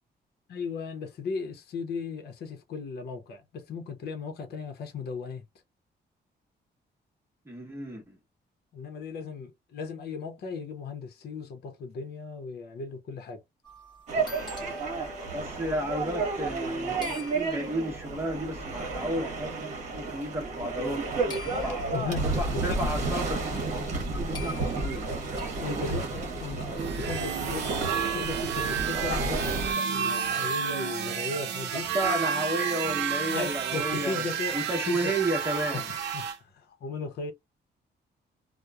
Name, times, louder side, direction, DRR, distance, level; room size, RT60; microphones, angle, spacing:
voice 1, 0.5-5.4 8.7-13.4 21.5-22.8 25.6-27.7 28.1-31.9 33.3-34.6 34.9-35.1 35.7-37.3, left 4 dB, 60° left, 0.7 m, -36 dB
voice 2, 7.5-8.2 15.3-21.8 22.2-23.5 24.1-25.1 31.9-34.3 34.5-35.8, right 1 dB, 15° right, 0.9 m, -32 dB
sound 1, 13.6-16.8 17.0-17.9 18.8-18.9 19.5-19.9 21.3-22.1 23.6-23.7 23.9-24.0 24.3-25.5, left 2 dB, 25° left, 1.0 m, -45 dB
sound 2, 14.1-29.7, right 3 dB, 40° right, 1.0 m, -31 dB
sound 3, 26.8-36.4, right 7 dB, 75° right, 0.6 m, -31 dB
2.9 x 2.1 x 2.3 m
wide cardioid pair, 175°, 18 cm